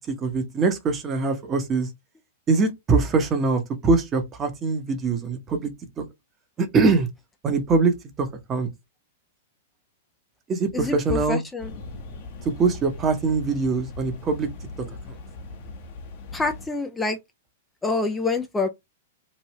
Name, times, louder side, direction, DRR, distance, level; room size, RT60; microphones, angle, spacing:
voice 1, 0.0-1.9 2.5-5.7 6.0-6.1 6.6-7.1 7.4-8.7 10.5-11.4 12.4-14.5 14.8-15.2, right 4 dB, 25° right, 0.8 m, -23 dB
voice 2, 10.7-11.7 16.3-17.2 17.8-18.7, left 3 dB, 10° left, 0.4 m, -26 dB
sound 1, 11.6-16.7, left 2 dB, 55° left, 1.2 m, -39 dB
3.1 x 2.6 x 3.0 m
hypercardioid pair, 105°, 0 cm